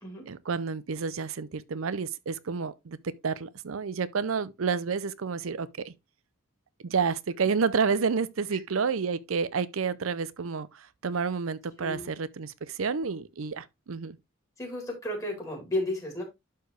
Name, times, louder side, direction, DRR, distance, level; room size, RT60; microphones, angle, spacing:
voice 1, 0.3-5.9 6.8-14.2, right 5 dB, 85° right, 0.6 m, -30 dB
voice 2, 11.8-12.1 14.6-16.2, left 1 dB, 15° left, 3.9 m, -33 dB
11.5 x 4.5 x 3.2 m
head